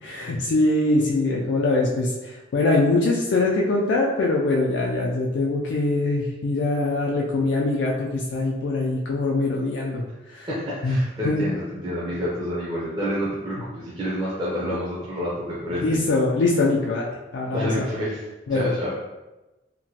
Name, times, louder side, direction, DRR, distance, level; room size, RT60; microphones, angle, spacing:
voice 1, 0.0-10.1 10.3-10.5 10.8-11.0 11.2-11.4 15.8-17.9 18.5-18.7, left 2 dB, 75° left, -2 dB, 0.3 m, -23 dB
voice 2, 10.4-15.9 17.4-18.2 18.5-18.9, equal, 25° right, -8 dB, 0.5 m, -28 dB
2.9 x 2.2 x 2.8 m, 1.1 s
head